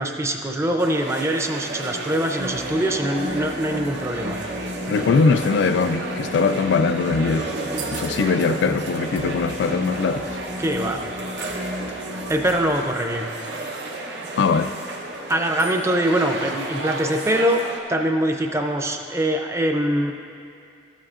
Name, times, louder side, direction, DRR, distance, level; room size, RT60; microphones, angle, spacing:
voice 1, 0.0-4.4 10.6-11.0 12.3-13.3 15.3-20.1, right 1 dB, 15° right, 4 dB, 0.5 m, -23 dB
sound 1, 0.8-17.8, right 2 dB, 90° right, 0.8 m, -33 dB
sound 2, 2.4-12.6, left 1 dB, 40° right, 0.8 m, -33 dB
voice 2, 4.9-7.5 7.9-10.2 14.4-14.7, left 4 dB, 85° left, 11 dB, 0.3 m, -21 dB
13.0 x 7.4 x 2.4 m, 2.4 s
head